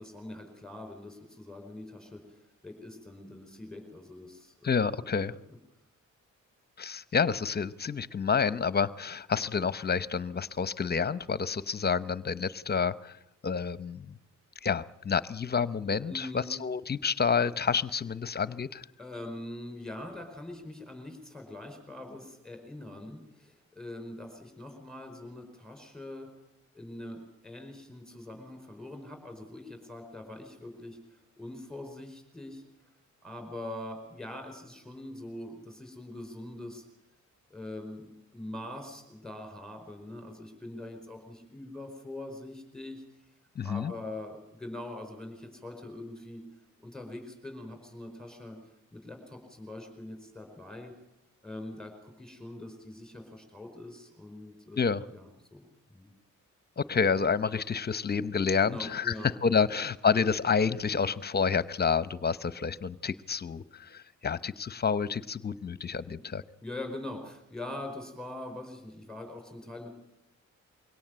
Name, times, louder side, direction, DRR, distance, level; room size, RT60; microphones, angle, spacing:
voice 1, 0.0-4.5 16.1-16.6 19.0-26.3 26.7-32.6 33.2-36.8 37.5-43.0 43.6-46.4 46.8-48.6 48.9-50.9 51.4-54.8 55.1-55.6 55.9-56.1 58.6-59.3 66.0-66.1 66.6-69.9, left 1 dB, ahead, 6 dB, 4.7 m, -43 dB
voice 2, 4.6-5.3 6.8-13.2 13.4-14.2 14.6-18.9 43.6-43.9 54.8-55.1 56.8-66.4, left 6 dB, 30° left, 16 dB, 0.8 m, -29 dB
23.0 x 17.5 x 8.0 m, 0.84 s
cardioid pair, 100°, 31 cm